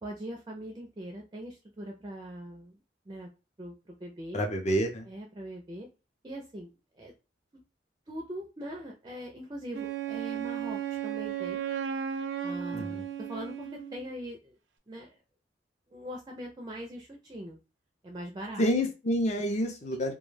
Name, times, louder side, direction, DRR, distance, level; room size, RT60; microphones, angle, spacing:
voice 1, 0.0-2.7 3.1-3.3 3.6-4.4 5.1-5.9 6.2-7.1 8.1-11.6 12.4-14.6 14.9-15.1 15.9-17.6 18.0-18.7, right 1 dB, 20° right, 1 dB, 0.4 m, -41 dB
voice 2, 4.3-5.1 12.7-13.0 18.6-20.1, equal, 40° left, 4 dB, 0.5 m, -28 dB
Wind instrument woodwind instrument, 9.7-14.1, right 9 dB, 85° right, 0.4 m, -35 dB
2.2 x 2.2 x 3.2 m, 0.30 s
head